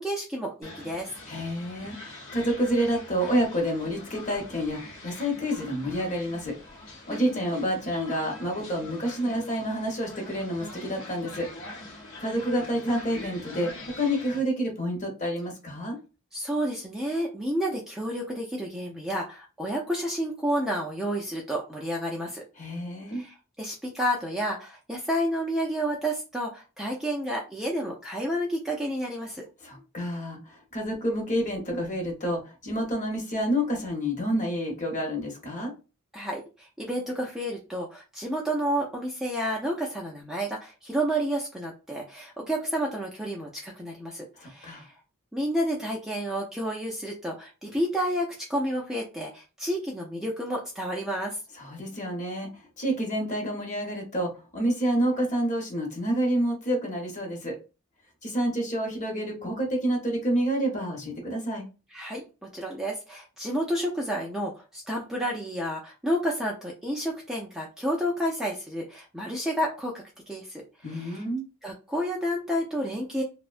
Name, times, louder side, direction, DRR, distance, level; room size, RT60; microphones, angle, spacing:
voice 1, 0.0-1.1 7.1-7.4 16.3-22.4 23.1-29.4 36.1-44.9 45.3-51.4 61.9-62.2 62.5-69.9 70.3-70.6 70.9-71.2 71.6-73.2, equal, ahead, -2 dB, 0.3 m, -30 dB
sound 1, 0.6-14.4, left 2 dB, 65° left, 0.9 m, -44 dB
voice 2, 1.3-11.5 12.2-16.0 22.6-23.2 29.6-35.7 44.4-44.9 51.5-57.6 58.2-61.7 70.8-71.4, equal, 35° left, 1 dB, 0.8 m, -29 dB
2.5 x 2.1 x 2.4 m, 0.31 s
head